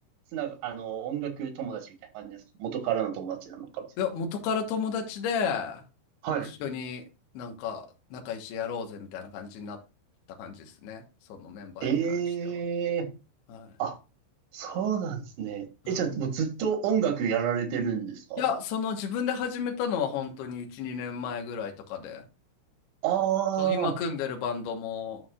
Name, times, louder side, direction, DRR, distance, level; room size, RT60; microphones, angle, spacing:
voice 1, 0.3-3.9 6.2-6.5 11.8-13.1 13.8-14.0 14.5-18.4 23.0-24.0, right 8 dB, 85° right, 3.9 m, -29 dB
voice 2, 4.0-5.8 6.6-7.0 7.3-7.8 8.1-9.8 10.4-10.5 10.8-11.0 11.3-11.9 13.5-13.7 18.4-22.2 23.6-25.2, left 6 dB, 70° left, 3.2 m, -32 dB
11.5 x 5.9 x 2.4 m
omnidirectional pair, 5.1 m